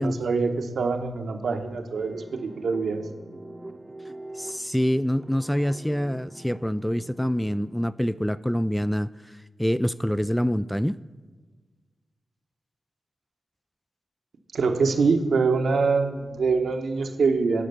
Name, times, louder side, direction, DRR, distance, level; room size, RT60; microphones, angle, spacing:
voice 1, 0.0-3.1 14.5-17.7, right 4 dB, 75° right, 5 dB, 1.0 m, -24 dB
sound 1, 1.9-7.9, right 1 dB, 30° right, 0.8 m, -44 dB
voice 2, 4.4-9.1 9.6-11.0, equal, 5° left, 15 dB, 0.3 m, -25 dB
12.0 x 5.1 x 6.7 m, 1.4 s
supercardioid pair, 40°, 0 cm